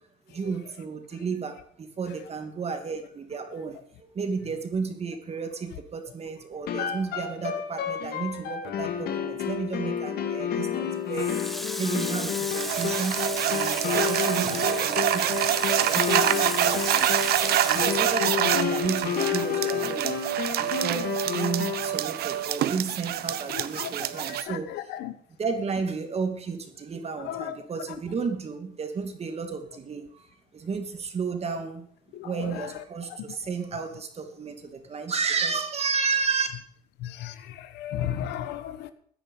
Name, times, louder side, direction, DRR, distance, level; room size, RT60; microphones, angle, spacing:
voice 1, 0.3-20.2 20.6-24.7 25.4-30.3 30.5-31.9 32.2-36.5, right 5 dB, 40° right, 2.7 m, -32 dB
sound 1, 6.7-22.0, left 9 dB, 70° left, 2.2 m, -31 dB
Water tap faucet, 11.1-19.0 19.3-20.6, equal, ahead, 1.3 m, -36 dB
sound 2, 12.5-24.4, right 12 dB, 70° right, 0.9 m, -26 dB
voice 2, 23.5-23.9 24.3-25.1 27.2-27.6 32.1-32.7 37.0-38.9, left 11 dB, 85° left, 1.3 m, -34 dB
15.5 x 10.0 x 5.6 m
cardioid pair, 110°, 17 cm